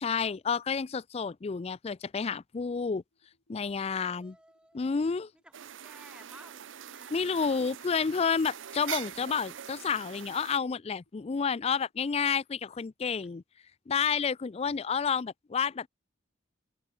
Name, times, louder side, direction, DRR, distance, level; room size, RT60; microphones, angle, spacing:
voice 1, 0.0-3.0 3.5-4.3 4.7-5.3 7.1-13.4 13.9-15.9, left 6 dB, 30° left, 0.4 m, -30 dB
sound 1, 2.7-11.9, left 1 dB, 80° left, 6.7 m, -74 dB
voice 2, 3.8-5.0 5.4-8.2 14.7-14.8, right 1 dB, 5° right, 1.8 m, -57 dB
sound 2, 5.5-10.6, right 10 dB, 85° right, 0.7 m, -43 dB
head